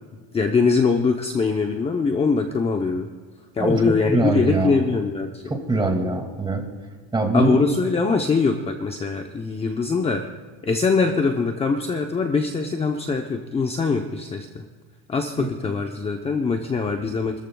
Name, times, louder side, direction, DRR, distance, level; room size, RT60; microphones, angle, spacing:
voice 1, 0.3-3.1 3.5-5.5 7.3-10.2 10.6-14.6 15.1-17.4, left 4 dB, 15° left, 4 dB, 0.8 m, -22 dB
voice 2, 3.6-4.8 5.5-6.6 7.1-7.6 15.4-15.5, right 3 dB, 15° right, 3 dB, 2.3 m, -23 dB
29.5 x 14.0 x 2.3 m, 1.5 s
cardioid pair, 135°, 35 cm